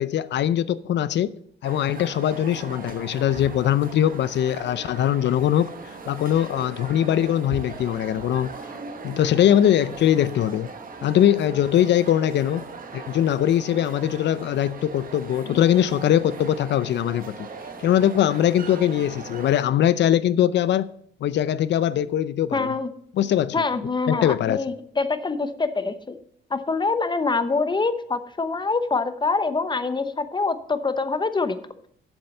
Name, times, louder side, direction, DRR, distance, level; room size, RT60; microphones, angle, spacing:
voice 1, 0.0-1.3 1.6-5.7 6.1-8.5 9.0-10.7 11.0-12.6 12.9-17.5 17.8-20.9 21.2-22.7 23.2-23.6 24.1-24.6, left 11 dB, 65° left, 0.5 m, -21 dB
sound 1, 1.6-19.6, right 4 dB, 45° right, 1.2 m, -39 dB
voice 2, 22.5-22.9 23.5-26.2 26.5-31.6, left 4 dB, 25° left, 0.9 m, -25 dB
7.5 x 7.2 x 6.6 m
cardioid pair, 90°, 20 cm